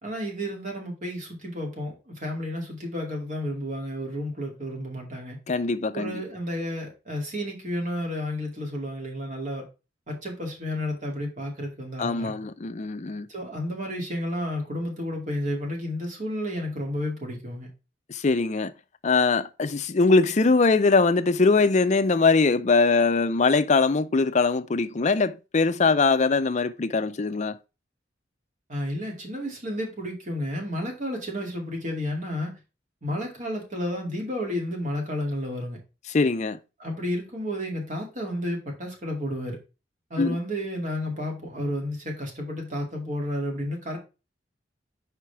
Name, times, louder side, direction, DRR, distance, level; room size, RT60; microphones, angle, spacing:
voice 1, 0.0-5.4 5.9-9.6 10.1-12.3 13.3-17.7 28.7-32.5 33.0-35.8 36.8-39.6 40.1-44.0, left 1 dB, 45° right, 2.3 m, -31 dB
voice 2, 5.5-6.1 12.0-13.3 18.1-18.7 19.0-27.6 36.1-36.6 40.2-40.4, left 4 dB, 40° left, 0.5 m, -22 dB
5.1 x 4.7 x 5.7 m
head